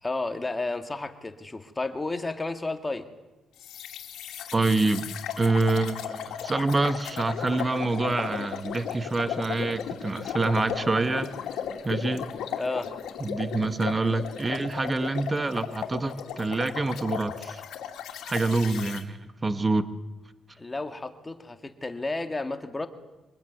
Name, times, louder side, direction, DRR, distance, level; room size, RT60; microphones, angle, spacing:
voice 1, 0.0-3.1 12.6-12.9 20.6-22.9, left 2 dB, 20° left, 8 dB, 2.0 m, -32 dB
sound 1, 3.6-19.0, left 8 dB, 80° left, 2.6 m, -36 dB
voice 2, 4.5-11.3 11.8-12.3 13.2-17.6 18.2-19.9, right 3 dB, 25° right, 11 dB, 1.6 m, -26 dB
24.5 x 19.5 x 9.5 m, 1.1 s
cardioid pair, 90°, 0 cm